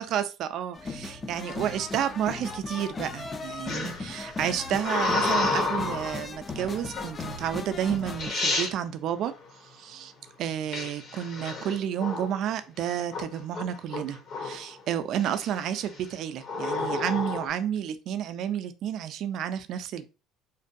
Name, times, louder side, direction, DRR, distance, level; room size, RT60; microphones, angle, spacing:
voice 1, 0.0-9.3 9.8-10.1 10.4-20.1, right 9 dB, 60° right, 0.3 m, -31 dB
sound 1, 0.7-8.3, left 3 dB, 25° left, 0.3 m, -37 dB
sound 2, 3.7-6.2 6.9-7.3 7.9-8.0 8.2-8.7 10.7-12.4 12.8-13.2 13.5-14.7 15.2-15.6 16.4-17.5, left 2 dB, 50° left, 0.9 m, -30 dB
2.6 x 2.2 x 2.5 m
cardioid pair, 120°, 0 cm